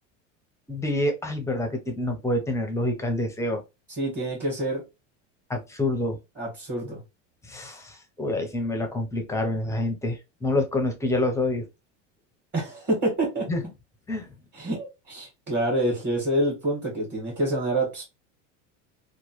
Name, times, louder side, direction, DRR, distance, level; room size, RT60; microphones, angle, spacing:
voice 1, 0.7-3.6 5.5-6.2 7.5-11.7 13.5-13.6 14.1-14.3, left 1 dB, 10° left, 0.5 m, -27 dB
voice 2, 4.0-4.8 6.4-7.0 12.5-13.5 14.5-18.0, right 1 dB, 25° right, 1.6 m, -27 dB
3.0 x 2.3 x 2.9 m
supercardioid pair, 125°, 36 cm